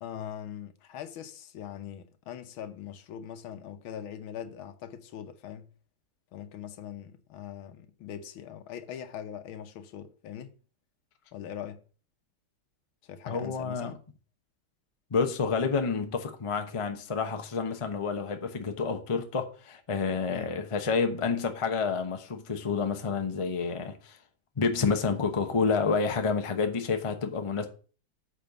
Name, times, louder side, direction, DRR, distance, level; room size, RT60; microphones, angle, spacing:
voice 1, 0.0-5.7 6.3-10.5 11.3-11.8 13.0-14.0 20.3-20.5, left 9 dB, 80° left, 1.7 m, -41 dB
voice 2, 13.3-14.0 15.1-24.2 24.6-27.7, left 5 dB, 30° left, 0.6 m, -29 dB
8.9 x 4.5 x 6.7 m
omnidirectional pair, 2.2 m